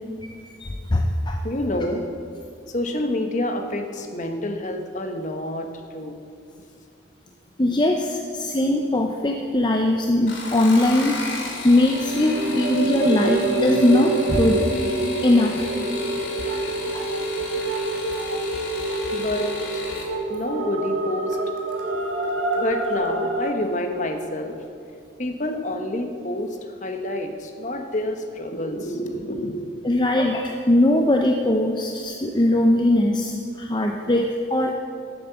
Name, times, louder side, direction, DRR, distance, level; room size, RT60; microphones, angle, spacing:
voice 1, 0.6-1.4 7.6-14.7 15.2-15.7 16.4-16.6 16.9-17.0 29.8-34.7, left 1 dB, 25° left, 2 dB, 0.6 m, -20 dB
voice 2, 1.4-2.1 2.7-6.1 19.1-19.8 20.3-21.4 22.6-24.6 25.2-29.8, left 1 dB, 40° left, 5 dB, 1.1 m, -28 dB
sound 1, 10.2-20.1 21.3-21.8 22.2-22.6 22.9-23.0, left 3 dB, 75° left, 2.6 m, -34 dB
sound 2, 11.7-23.5, right 2 dB, 90° right, 1.8 m, -26 dB
12.5 x 8.7 x 7.9 m, 2.4 s
head